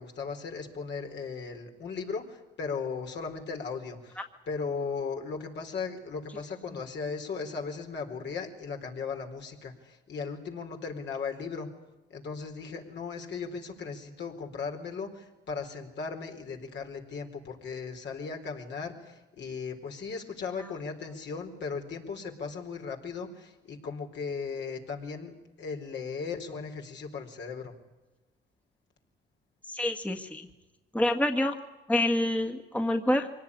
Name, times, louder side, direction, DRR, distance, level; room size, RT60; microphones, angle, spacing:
voice 1, 0.0-11.7 12.1-27.7, left 5 dB, 65° left, 2 dB, 4.4 m, -37 dB
voice 2, 29.7-30.4 30.9-31.6 31.9-33.3, left 1 dB, 5° left, 4 dB, 1.8 m, -27 dB
24.5 x 18.5 x 10.0 m, 1.1 s
cardioid pair, 90°, 20 cm